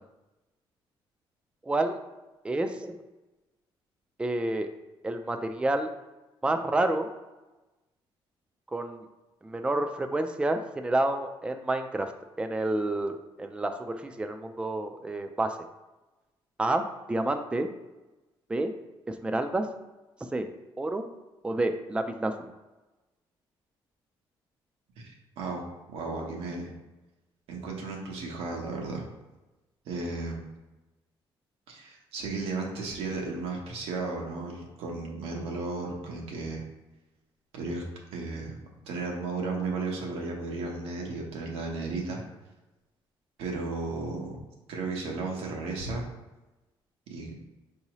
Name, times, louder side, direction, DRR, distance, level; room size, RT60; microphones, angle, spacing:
voice 1, 1.7-2.0 2.4-2.9 4.2-4.7 5.0-5.9 6.4-7.1 8.7-9.0 9.4-12.1 12.4-15.6 16.6-17.7 18.5-18.7 19.1-19.6 20.3-20.5 20.8-21.0 21.4-22.3, right 2 dB, 10° right, 6 dB, 0.4 m, -29 dB
voice 2, 25.0-25.6 25.9-26.7 27.5-29.0 29.8-30.4 31.7-36.6 37.5-37.8 38.1-38.6 38.9-42.2 43.4-44.4 44.7-46.0 47.1-47.4, right 3 dB, 90° right, 0 dB, 1.0 m, -34 dB
4.6 x 2.8 x 3.0 m, 1.1 s
cardioid pair, 85°, 10 cm